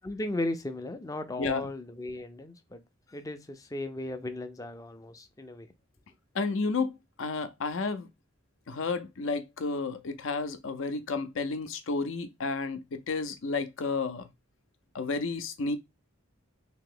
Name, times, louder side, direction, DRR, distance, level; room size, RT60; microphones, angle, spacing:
voice 1, 0.0-2.8 3.1-5.7, left 2 dB, 15° left, 0.4 m, -36 dB
voice 2, 1.4-1.7 6.3-6.9 7.2-8.1 8.7-14.3 14.9-15.8, left 4 dB, 65° left, 0.5 m, -31 dB
2.8 x 2.8 x 3.8 m
head